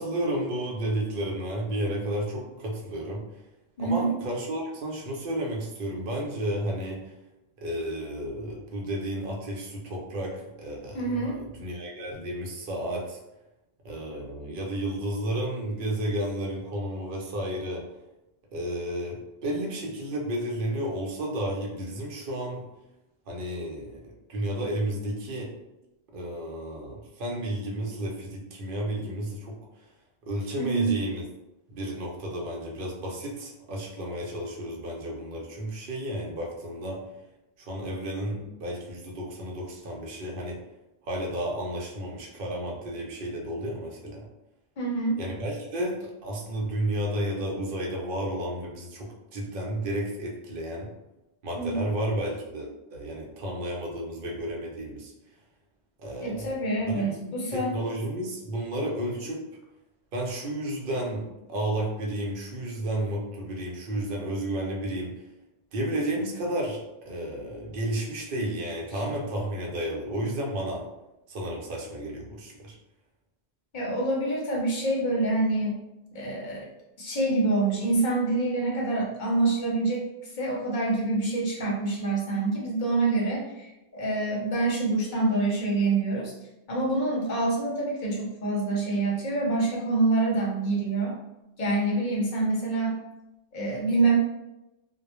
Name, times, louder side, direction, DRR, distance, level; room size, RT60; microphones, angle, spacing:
voice 1, 0.0-3.3 3.8-7.1 7.6-13.2 13.8-17.8 18.5-22.7 23.3-25.5 26.1-29.8 30.3-31.2 31.7-37.0 37.6-40.6 41.0-44.3 45.2-50.9 51.4-55.1 56.0-56.6 56.9-59.4 60.1-65.2 65.7-70.9 71.3-72.8, right 1 dB, 60° right, -1 dB, 0.7 m, -32 dB
voice 2, 3.8-4.1 10.9-11.4 30.6-30.9 44.8-45.2 51.6-51.8 56.2-57.7 73.7-75.8 76.1-76.7 77.0-86.3 86.7-91.1 91.6-93.0 93.5-94.2, right 2 dB, 50° left, -4 dB, 0.7 m, -26 dB
2.1 x 2.1 x 2.9 m, 0.93 s
omnidirectional pair, 1.1 m